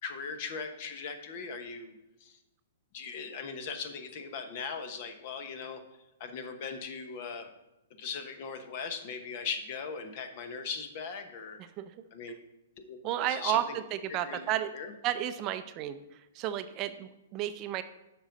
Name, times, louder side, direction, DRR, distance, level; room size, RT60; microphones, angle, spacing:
voice 1, 0.0-2.4 2.9-5.8 6.2-7.5 8.0-11.6 12.1-12.3 12.8-13.8 14.1-14.4 14.7-14.9, left 5 dB, 50° left, 7 dB, 1.1 m, -39 dB
voice 2, 13.0-13.6 13.9-14.7 15.0-16.0 16.3-17.8, right 12 dB, 35° right, 10 dB, 0.5 m, -32 dB
7.3 x 5.5 x 5.2 m, 0.97 s
hypercardioid pair, 125°, 0 cm